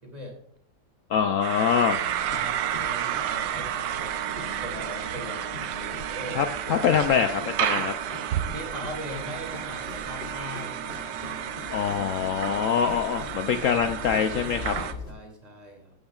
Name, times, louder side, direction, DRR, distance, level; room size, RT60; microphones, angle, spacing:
voice 1, 0.0-0.3 2.2-4.2 4.6-6.4 8.5-11.5 14.7-15.9, equal, 20° right, 0 dB, 2.7 m, -41 dB
voice 2, 1.1-2.0 6.3-7.9 11.7-14.8, left 7 dB, 80° left, 7 dB, 0.7 m, -24 dB
sound 1, 1.4-14.9, right 10 dB, 80° right, 1.4 m, -31 dB
sound 2, 1.9-15.1, left 4 dB, 35° left, 1.5 m, -42 dB
15.0 x 8.9 x 2.4 m, 0.66 s
omnidirectional pair, 2.0 m